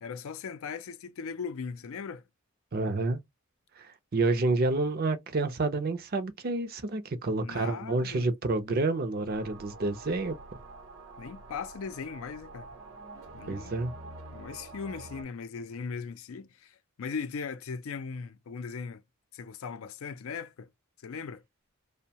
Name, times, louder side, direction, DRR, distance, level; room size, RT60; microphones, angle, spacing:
voice 1, 0.0-2.2 7.4-8.3 11.2-12.7 13.3-13.8 14.3-19.0 19.3-20.7 21.0-21.4, left 5 dB, 70° left, 0.4 m, -38 dB
voice 2, 2.7-3.2 3.8-10.4 13.5-13.9, right 3 dB, 45° right, 0.5 m, -29 dB
sound 1, 9.3-15.2, right 2 dB, 75° right, 0.8 m, -47 dB
2.6 x 2.1 x 2.8 m
head